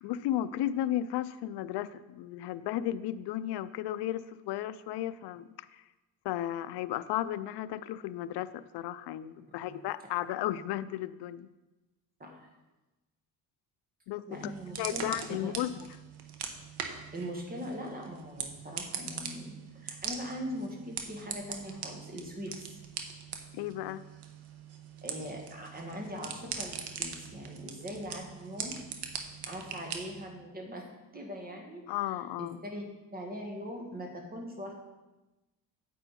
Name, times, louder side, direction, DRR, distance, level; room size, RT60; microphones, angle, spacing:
voice 1, 0.0-5.5 6.2-11.5 14.1-14.5 14.8-15.9 23.5-24.0 27.7-27.8 31.9-32.6, left 12 dB, 80° left, 14 dB, 0.5 m, -34 dB
voice 2, 14.3-15.5 17.1-22.8 25.0-28.8 29.5-30.9 31.1-32.8 33.1-34.7, equal, 20° right, 1 dB, 1.8 m, -41 dB
sound 1, 14.3-30.3, right 7 dB, 80° right, 1.1 m, -42 dB
9.4 x 8.1 x 4.2 m, 1.1 s
cardioid pair, 145°, 39 cm